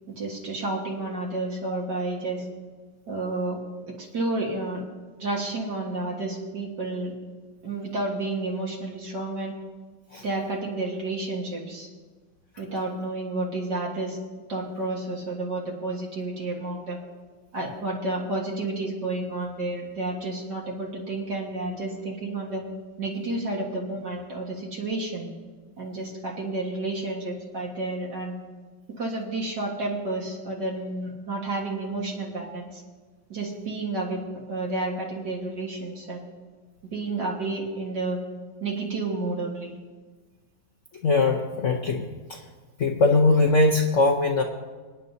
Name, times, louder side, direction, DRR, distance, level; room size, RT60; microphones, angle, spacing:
voice 1, 0.1-2.4 3.1-3.6 3.9-4.8 5.2-7.1 7.6-9.5 10.2-11.9 12.6-14.2 14.5-17.0 17.5-22.6 23.0-25.3 25.8-28.4 29.0-32.8 33.3-34.2 34.5-36.3 36.9-38.2 38.6-39.7, right 2 dB, 65° right, -3 dB, 2.2 m, -30 dB
voice 2, 41.0-42.4 42.8-44.4, left 3 dB, 55° left, 2 dB, 0.9 m, -21 dB
27.0 x 9.3 x 2.8 m, 1.4 s
omnidirectional pair, 2.1 m